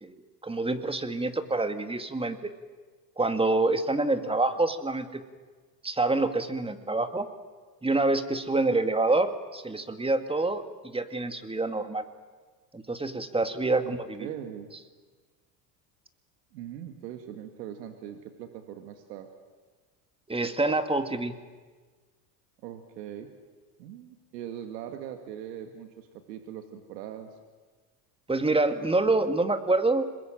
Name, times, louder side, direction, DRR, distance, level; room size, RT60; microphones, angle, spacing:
voice 1, 0.0-2.5 3.2-5.2 5.8-7.3 7.8-12.0 12.7-14.3 20.3-21.4 28.3-30.1, right 2 dB, 10° right, 8 dB, 2.2 m, -27 dB
voice 2, 13.8-14.7 16.5-19.3 22.6-23.3 23.8-27.4, right 10 dB, 80° right, 6 dB, 2.2 m, -41 dB
26.5 x 21.0 x 9.1 m, 1.4 s
hypercardioid pair, 90°, 48 cm